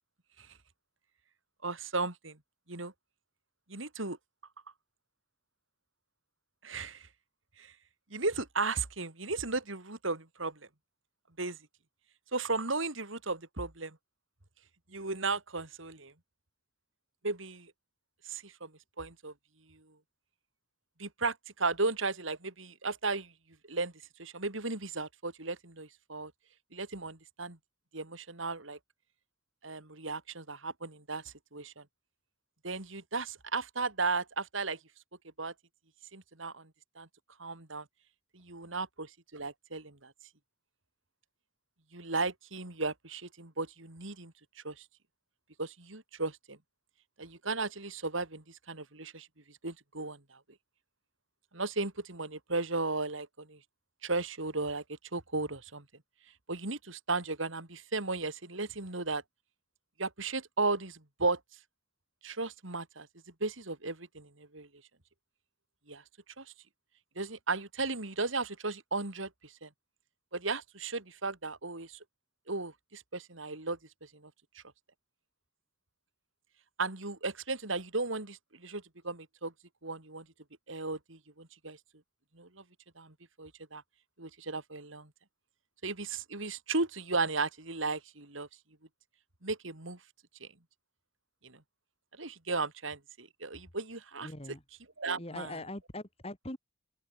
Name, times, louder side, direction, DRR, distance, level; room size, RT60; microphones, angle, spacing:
voice 1, 1.6-2.4 2.7-2.9 3.7-4.2 6.6-7.1 7.6-7.7 8.1-10.6 11.4-11.6 12.3-14.0 14.9-16.1 17.2-17.7 18.2-18.7 19.0-19.3 19.7-19.8 21.0-23.3 23.7-23.9 24.2-26.3 26.7-27.6 27.9-28.8 29.6-31.8 32.6-34.8 35.4-35.5 36.1-36.7 37.0-37.1 37.4-37.8 38.3-40.1 41.9-44.3 44.6-44.8 45.6-46.6 47.2-49.3 49.6-50.4 51.5-53.6 54.0-54.8 55.1-55.8 56.5-59.2 60.0-61.4 62.2-63.1 63.4-64.7 65.9-66.0 66.4-66.5 67.1-69.7 70.3-72.0 72.5-73.8 74.1-74.3 76.8-79.5 79.8-80.2 80.7-81.8 82.3-82.6 83.0-83.8 84.2-85.1 85.8-88.5 89.4-90.0 90.4-90.5 91.4-91.6 92.2-94.3 95.0-95.6, right 3 dB, 80° right, 3.3 m, -35 dB
voice 2, 94.2-94.6 95.2-96.6, left 1 dB, 30° left, 2.9 m, -42 dB
open air
head